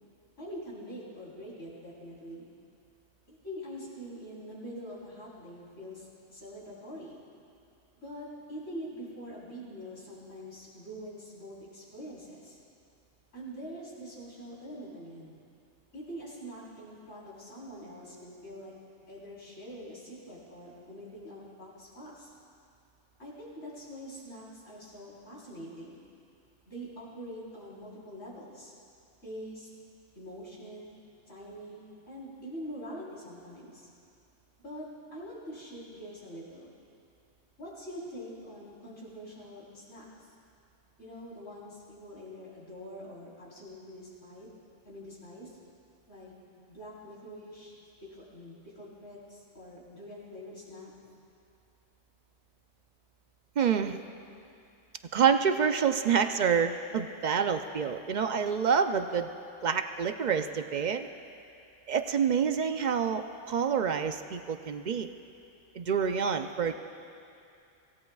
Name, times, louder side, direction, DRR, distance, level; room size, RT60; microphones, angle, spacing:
voice 1, 0.4-2.5 3.3-7.2 8.0-12.6 13.3-15.4 15.9-18.7 19.1-22.3 23.2-26.0 26.7-28.7 29.2-29.7 30.2-31.0 31.3-33.9 34.6-36.7 37.6-40.3 41.0-44.5 44.9-45.6 46.1-46.3 46.7-47.7 48.1-50.9, equal, 75° left, -7 dB, 4.3 m, -44 dB
voice 2, 53.6-54.0 55.1-59.3 59.6-61.1 61.9-65.1 65.8-66.8, right 7 dB, 55° right, 7 dB, 0.5 m, -27 dB
25.5 x 16.5 x 2.4 m, 2.6 s
omnidirectional pair, 1.3 m